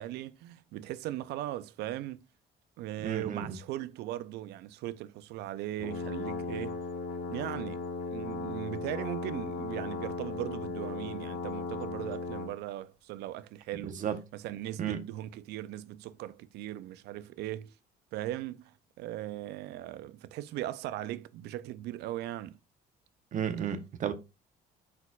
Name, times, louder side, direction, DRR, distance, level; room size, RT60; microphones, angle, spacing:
voice 1, 0.0-2.2 2.8-6.8 7.3-14.0 14.3-17.8 18.1-22.6, right 14 dB, 80° right, 0.4 m, -39 dB
voice 2, 3.0-3.6 14.0-14.2 14.8-15.0 23.3-24.1, right 8 dB, 50° right, 0.8 m, -32 dB
sound 1, 5.8-12.6, left 3 dB, 75° left, 1.4 m, -37 dB
4.2 x 4.0 x 2.3 m
cardioid pair, 110°, 17 cm